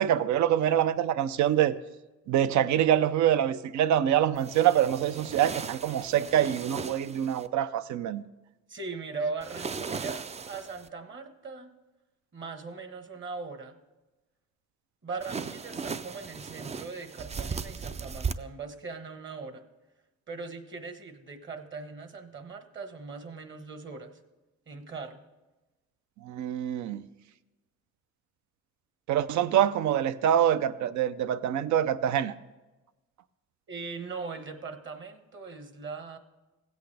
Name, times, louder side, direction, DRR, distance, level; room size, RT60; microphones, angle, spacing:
voice 1, 0.0-1.7 2.3-8.2 26.2-27.0 29.1-32.3, right 10 dB, 70° right, 0.6 m, -25 dB
sound 1, 4.4-7.5 9.4-10.9 15.2-18.3, right 5 dB, 25° right, 0.4 m, -37 dB
voice 2, 8.7-11.7 12.3-13.8 15.0-19.6 20.3-24.1 24.7-25.2 33.7-36.2, right 4 dB, 40° right, 1.2 m, -39 dB
16.0 x 8.2 x 3.4 m
cardioid pair, 90°, 30 cm